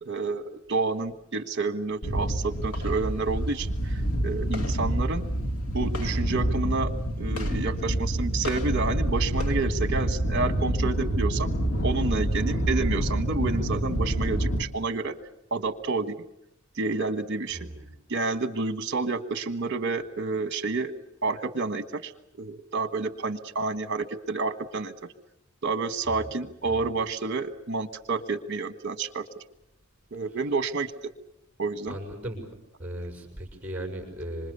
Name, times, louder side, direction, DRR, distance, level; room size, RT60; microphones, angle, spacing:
voice 1, 0.0-5.2 5.7-11.5 11.8-15.1 15.5-16.1 16.8-17.7 18.1-20.9 21.2-22.1 22.4-24.9 25.6-29.2 30.1-30.9 31.6-31.9, right 3 dB, 50° right, 11 dB, 1.4 m, -29 dB
sound 1, 2.0-14.6, right 1 dB, 90° left, 2.3 m, -27 dB
voice 2, 17.5-17.9 26.0-26.3 26.6-26.8 31.9-32.5 32.8-34.5, right 1 dB, 10° right, 3 dB, 6.4 m, -37 dB
26.5 x 25.5 x 6.9 m, 0.80 s
head